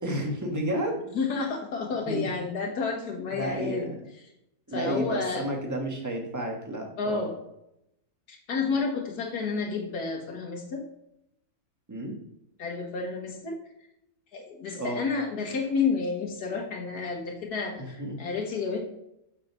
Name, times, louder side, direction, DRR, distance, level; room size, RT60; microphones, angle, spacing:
voice 1, 0.0-1.0 2.1-2.3 3.3-4.0 4.7-7.3 11.9-12.1 14.7-15.0 17.8-18.1, right 1 dB, 10° right, 1 dB, 1.5 m, -31 dB
voice 2, 1.1-3.9 4.7-5.5 7.0-7.4 8.3-10.9 12.6-13.6 14.3-18.8, left 4 dB, 85° left, 1 dB, 1.8 m, -30 dB
7.2 x 5.4 x 5.6 m, 0.81 s
omnidirectional pair, 1.6 m